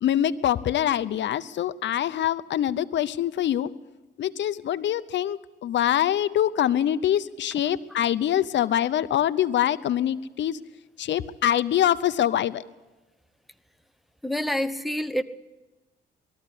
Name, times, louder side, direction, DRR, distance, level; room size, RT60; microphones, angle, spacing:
voice 1, 0.0-3.7 4.2-10.6 11.0-12.6, left 11 dB, 65° left, 15 dB, 0.7 m, -24 dB
voice 2, 14.2-15.2, left 1 dB, ahead, 9 dB, 1.0 m, -27 dB
21.0 x 14.0 x 10.0 m, 1.1 s
cardioid pair, 90°, 20 cm